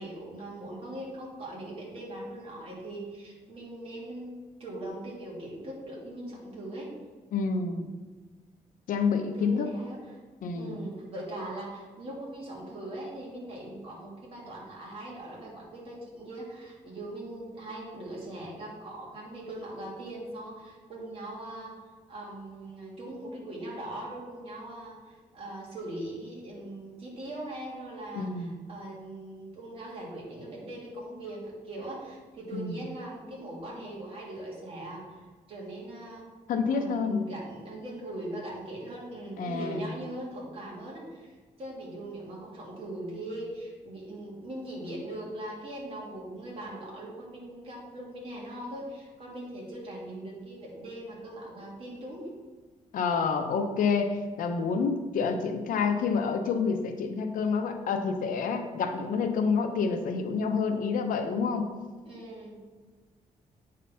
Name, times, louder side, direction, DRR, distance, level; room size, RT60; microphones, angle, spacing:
voice 1, 0.0-4.3 4.6-6.9 9.3-10.2 10.5-21.7 22.1-36.2 36.7-52.3 62.0-62.6, right 1 dB, 40° right, -4 dB, 2.4 m, -40 dB
voice 2, 7.3-7.9 8.9-9.7 10.4-10.9 28.1-28.5 32.5-32.8 36.5-37.2 39.4-39.9 52.9-61.7, left 5 dB, 75° left, 6 dB, 0.8 m, -28 dB
8.5 x 3.9 x 5.6 m, 1.4 s
wide cardioid pair, 165°, 14 cm